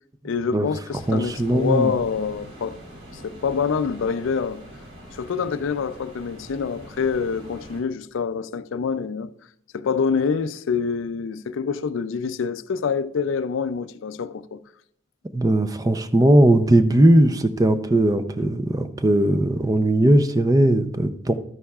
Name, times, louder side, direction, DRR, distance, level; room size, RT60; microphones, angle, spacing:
voice 1, 0.2-2.8 3.1-4.6 5.1-9.3 9.7-14.6, left 6 dB, 70° left, 0.4 m, -26 dB
sound 1, 0.9-7.8, equal, 65° right, 4.0 m, -43 dB
voice 2, 1.1-1.9 15.3-21.3, right 1 dB, 15° right, 0.5 m, -18 dB
12.5 x 9.8 x 2.4 m
head